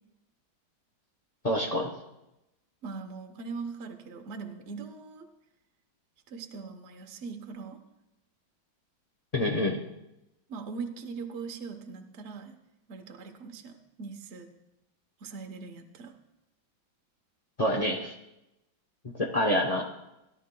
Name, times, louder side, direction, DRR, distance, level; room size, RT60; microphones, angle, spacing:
voice 1, 1.4-1.9 9.3-9.8 17.6-18.1 19.1-19.8, left 1 dB, 80° left, -1 dB, 0.3 m, -27 dB
voice 2, 2.8-5.3 6.3-7.8 10.5-12.5 12.9-14.5 15.2-16.1, right 5 dB, 45° right, 4 dB, 1.0 m, -40 dB
17.5 x 11.5 x 2.2 m, 0.92 s
omnidirectional pair, 2.2 m